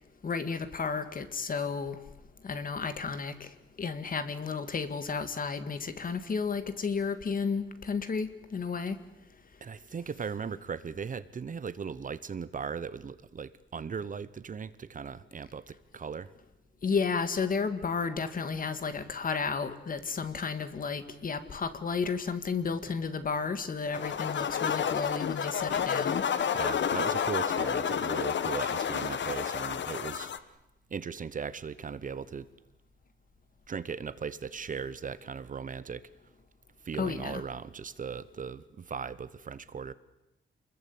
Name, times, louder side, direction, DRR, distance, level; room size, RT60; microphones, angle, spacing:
voice 1, 0.2-2.0 2.4-3.5 3.8-9.0 16.8-26.2 37.0-37.4, left 5 dB, 45° left, 10 dB, 2.1 m, -32 dB
voice 2, 9.6-16.3 26.5-30.5 30.9-32.5 33.7-36.1 36.8-39.9, right 6 dB, 40° right, 16 dB, 1.0 m, -38 dB
sound 1, 23.9-30.4, left 7 dB, 65° left, 1.3 m, -30 dB
28.5 x 22.0 x 8.7 m, 0.93 s
wide cardioid pair, 170°, 20 cm